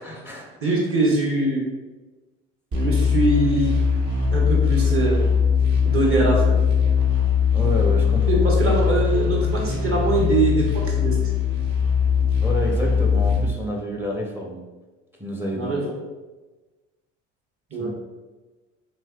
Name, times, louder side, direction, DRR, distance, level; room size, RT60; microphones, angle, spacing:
voice 1, 0.0-0.9 7.5-8.5 12.4-14.6 15.2-15.8 17.8-17.9, left 1 dB, 5° right, 0 dB, 0.5 m, -29 dB
voice 2, 0.6-1.6 2.7-3.7 4.3-5.2 5.8-6.5 8.3-11.2 15.5-15.8 17.7-17.9, right 2 dB, 35° right, -2 dB, 1.0 m, -22 dB
sound 1, 2.7-13.4, left 6 dB, 55° right, 1.3 m, -20 dB
3.1 x 2.9 x 2.3 m, 1.2 s
hypercardioid pair, 70°, 37 cm